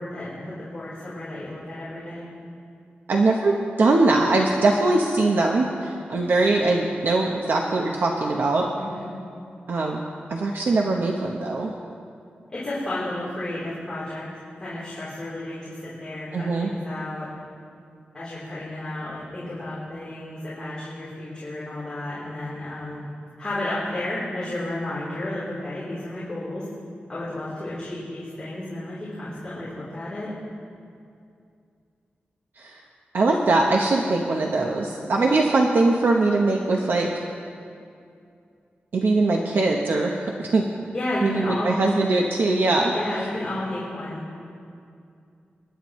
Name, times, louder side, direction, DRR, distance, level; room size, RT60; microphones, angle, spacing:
voice 1, 0.0-2.2 8.8-9.1 12.5-14.3 14.6-17.3 18.1-23.0 23.4-26.7 27.1-30.3 40.9-41.8 42.9-44.2, left 1 dB, 25° left, -11 dB, 3.5 m, -32 dB
voice 2, 3.1-8.7 9.7-10.0 10.3-11.7 16.3-16.7 32.6-32.7 33.1-37.1 38.9-40.7 41.2-42.9, right 2 dB, 65° right, 0 dB, 0.9 m, -21 dB
26.0 x 11.0 x 3.2 m, 2.4 s
wide cardioid pair, 165°, 4 cm